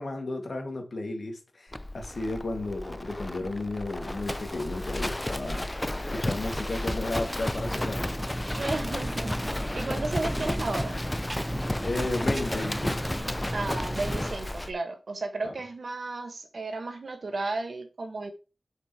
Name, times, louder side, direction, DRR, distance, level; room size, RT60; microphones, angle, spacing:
voice 1, 0.0-5.7 6.1-8.0 11.8-13.0 15.4-15.5, left 2 dB, 75° left, 1.6 m, -33 dB
Livestock farm animals working animals, 1.7-14.7, left 1 dB, 20° left, 0.4 m, -33 dB
sound 1, 7.5-14.3, equal, 15° right, 0.7 m, -35 dB
voice 2, 8.5-9.3 9.7-11.0 13.5-18.3, right 3 dB, 80° right, 1.2 m, -33 dB
7.3 x 5.2 x 2.8 m
wide cardioid pair, 65°, 0 cm